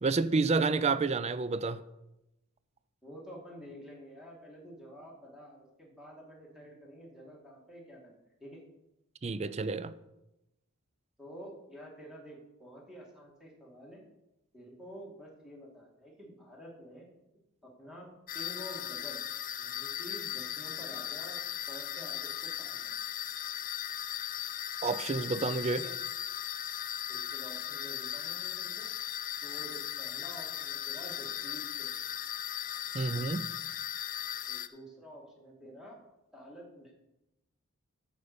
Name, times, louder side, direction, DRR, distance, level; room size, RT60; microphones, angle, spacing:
voice 1, 0.0-1.8 9.2-9.9 24.8-25.8 32.9-33.5, right 4 dB, 30° right, 0.3 m, -29 dB
voice 2, 3.0-8.1 8.4-8.6 11.2-14.0 14.5-17.1 17.6-18.1 18.3-19.2 19.6-21.4 21.7-22.9 25.7-26.0 27.1-28.9 29.4-31.9 34.5-36.0 36.3-36.9, equal, 5° right, 2.1 m, -49 dB
sound 1, 18.3-34.7, left 11 dB, 35° left, 0.4 m, -38 dB
9.5 x 5.1 x 6.8 m
head